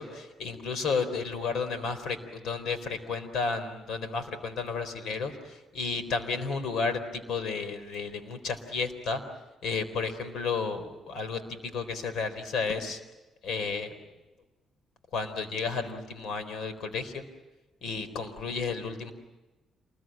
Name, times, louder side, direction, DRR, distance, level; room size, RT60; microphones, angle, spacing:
voice 1, 0.0-9.2 9.6-11.4 11.7-13.0 13.4-13.9 15.1-17.3 17.8-19.1, left 4 dB, 70° left, 11 dB, 4.0 m, -32 dB
28.0 x 21.5 x 9.1 m, 1.1 s
cardioid pair, 90°, 0 cm